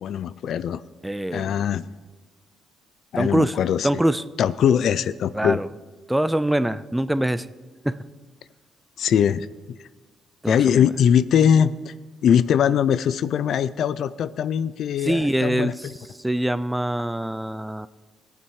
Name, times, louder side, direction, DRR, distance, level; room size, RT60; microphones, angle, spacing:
voice 1, 0.0-0.8 1.3-1.9 3.1-3.9 4.4-5.6 9.0-9.5 10.5-11.9 12.2-15.9, left 8 dB, 70° left, 16 dB, 0.4 m, -21 dB
voice 2, 1.0-1.6 3.2-3.6 3.8-4.2 5.3-5.7 6.1-7.5 7.8-8.0 10.4-10.9 15.0-15.9 16.2-17.9, right 1 dB, 5° right, 15 dB, 0.4 m, -24 dB
18.0 x 8.8 x 4.7 m, 1.3 s
cardioid pair, 90°, 0 cm